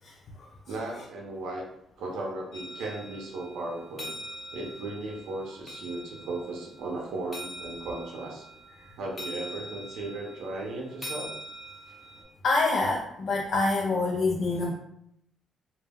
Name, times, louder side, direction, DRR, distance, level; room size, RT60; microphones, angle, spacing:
voice 1, 0.0-0.5 0.9-1.0 8.8-8.9 12.4-14.7, left 3 dB, 55° left, -1 dB, 0.3 m, -27 dB
voice 2, 0.7-1.6 2.0-4.1 4.5-8.4 9.0-11.3, right 2 dB, 85° right, -1 dB, 0.6 m, -36 dB
sound 1, 2.5-12.2, equal, 25° left, 0.7 m, -43 dB
2.1 x 2.0 x 3.5 m, 0.75 s
cardioid pair, 90°, 0 cm